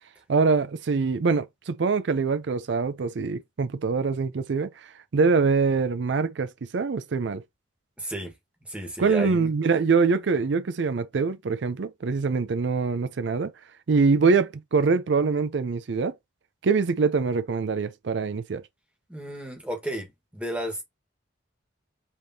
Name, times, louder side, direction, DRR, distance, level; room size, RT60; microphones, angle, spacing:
voice 1, 0.3-7.4 9.0-13.5 13.9-16.1 16.6-18.6, right 4 dB, 65° right, 0.5 m, -24 dB
voice 2, 8.0-8.3 8.7-9.5 19.1-20.8, equal, 5° right, 1.4 m, -33 dB
5.5 x 3.5 x 2.8 m
head